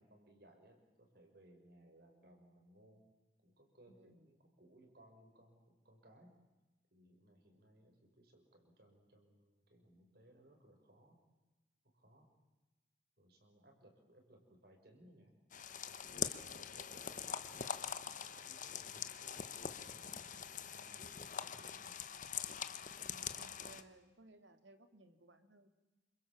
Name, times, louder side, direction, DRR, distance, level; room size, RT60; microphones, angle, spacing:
voice 1, 0.0-3.0 3.4-6.3 6.9-11.2 11.9-12.3 13.2-15.3 16.0-22.2, right 1 dB, 55° right, 4 dB, 5.8 m, -64 dB
voice 2, 3.9-4.3 23.0-25.7, right 2 dB, 75° right, 8 dB, 2.6 m, -61 dB
sound 1, 15.5-23.8, left 7 dB, 40° left, 1.2 m, -43 dB
28.5 x 26.0 x 7.4 m, 1.1 s
head